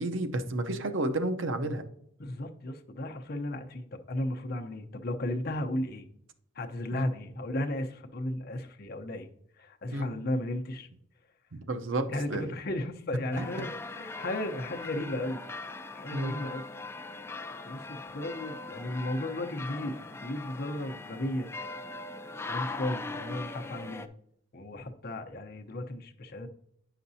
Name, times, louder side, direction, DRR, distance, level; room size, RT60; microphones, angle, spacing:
voice 1, 0.0-1.8 6.9-7.1 9.9-10.1 11.5-12.5 13.4-13.7 16.1-16.3, right 1 dB, 70° right, 7 dB, 0.7 m, -31 dB
voice 2, 2.2-6.1 6.6-9.3 9.6-10.9 12.1-15.4 15.9-16.6 17.6-21.5 22.5-24.1 24.5-26.5, left 1 dB, 50° left, 4 dB, 0.7 m, -35 dB
sound 1, 13.3-24.1, left 3 dB, 10° left, 0.3 m, -40 dB
9.6 x 5.9 x 2.7 m, 0.72 s
head